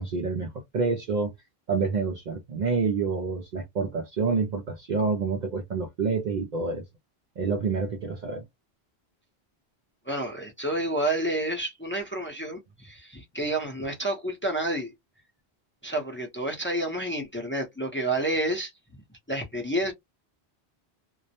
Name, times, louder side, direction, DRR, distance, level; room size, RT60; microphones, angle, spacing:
voice 1, 0.0-1.3 1.7-6.8 7.4-8.4, right 4 dB, 55° right, 0.5 m, -28 dB
voice 2, 10.1-14.9 15.8-18.7 19.3-19.9, right 1 dB, 15° left, 0.6 m, -29 dB
2.3 x 2.1 x 2.7 m
omnidirectional pair, 1.1 m